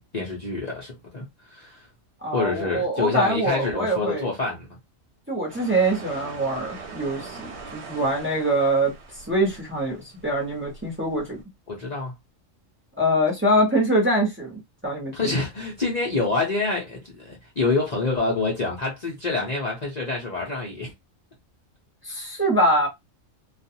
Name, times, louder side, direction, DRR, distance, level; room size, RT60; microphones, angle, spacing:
voice 1, 0.0-1.9 2.3-4.8 11.7-12.1 15.1-20.9, left 3 dB, 40° left, 0.7 m, -27 dB
voice 2, 2.2-4.3 5.3-11.4 13.0-15.3 22.0-22.9, right 1 dB, 10° right, 0.8 m, -24 dB
sound 1, 5.5-11.4, right 4 dB, 65° right, 1.0 m, -42 dB
2.4 x 2.3 x 2.7 m
omnidirectional pair, 1.3 m